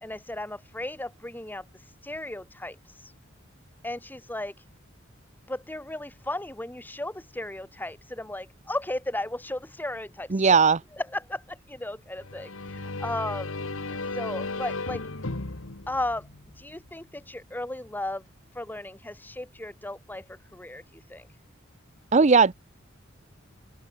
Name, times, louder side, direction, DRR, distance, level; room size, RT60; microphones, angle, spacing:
voice 1, 0.0-3.1 3.8-4.6 5.5-10.6 11.1-13.5 13.8-15.1 15.9-16.3 16.5-18.2 18.5-21.3, left 1 dB, 10° left, 1.6 m, -35 dB
voice 2, 10.3-10.8 22.1-22.5, right 5 dB, 35° right, 0.6 m, -18 dB
sound 1, 12.2-16.9, left 3 dB, 75° left, 1.6 m, -35 dB
open air
head